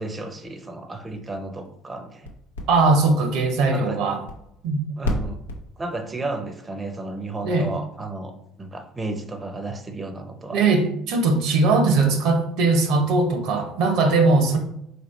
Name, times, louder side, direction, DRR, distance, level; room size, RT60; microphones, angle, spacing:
voice 1, 0.0-2.3 3.7-4.0 5.0-5.4 5.8-8.3 8.6-10.6, right 2 dB, 25° right, 7 dB, 0.5 m, -33 dB
sound 1, 0.9-6.0, left 1 dB, 90° left, 0.5 m, -35 dB
voice 2, 2.7-4.2 4.6-4.8 7.4-7.7 10.5-14.6, right 3 dB, 65° right, 6 dB, 0.6 m, -20 dB
4.2 x 2.9 x 3.1 m, 0.79 s
hypercardioid pair, 60°, 0 cm